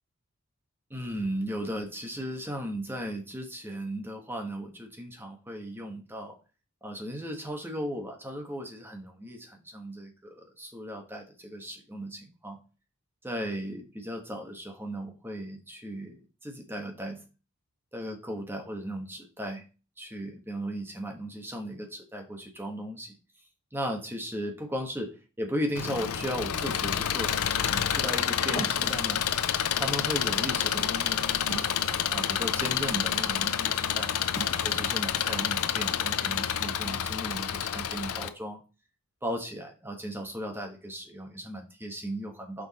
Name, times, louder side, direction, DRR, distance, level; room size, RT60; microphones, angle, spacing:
voice 1, 0.9-6.3 6.8-12.6 13.2-17.2 17.9-19.6 20.0-23.1 23.7-29.2 29.8-31.4 32.1-34.1 34.6-38.6 39.2-42.7, equal, 10° right, 2 dB, 1.2 m, -36 dB
Engine, 25.7-38.3, left 9 dB, 90° left, 0.6 m, -28 dB
sound 1, 26.5-32.6 33.0-35.7, right 1 dB, 30° left, 2.5 m, -43 dB
6.1 x 4.7 x 4.1 m, 0.33 s
head